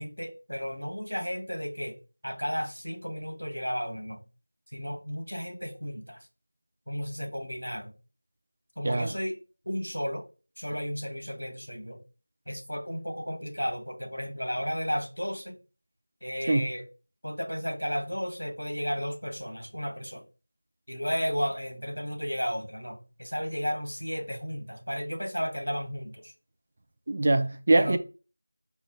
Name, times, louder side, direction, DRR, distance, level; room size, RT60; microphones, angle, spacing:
voice 1, 0.0-4.2 4.7-6.2 6.9-7.9 8.8-9.4 9.6-10.2 10.6-12.0 12.5-15.6 16.2-16.9 17.2-20.2 20.9-26.3 27.8-28.0, equal, 80° left, 1.5 m, -33 dB
voice 2, 27.1-28.0, right 2 dB, 30° right, 0.4 m, -23 dB
4.6 x 2.4 x 4.3 m
figure-of-eight pair, 170°, 0 cm